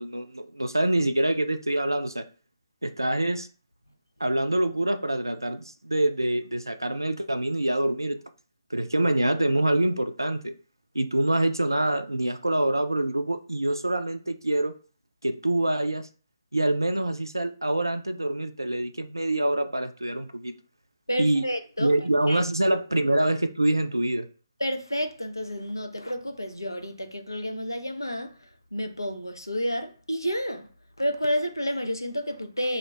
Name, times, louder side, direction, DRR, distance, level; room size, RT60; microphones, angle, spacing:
voice 1, 0.0-2.2 2.8-3.5 4.2-8.2 8.7-10.5 10.9-14.7 15.2-16.1 16.5-20.5 21.2-21.4 21.8-24.3, right 1 dB, 85° right, 0.3 m, -25 dB
voice 2, 21.1-21.9 22.3-22.8 24.6-28.4 28.7-30.7 31.0-32.8, equal, 90° left, 0.4 m, -30 dB
2.3 x 2.1 x 3.0 m
figure-of-eight pair, 135°, 2 cm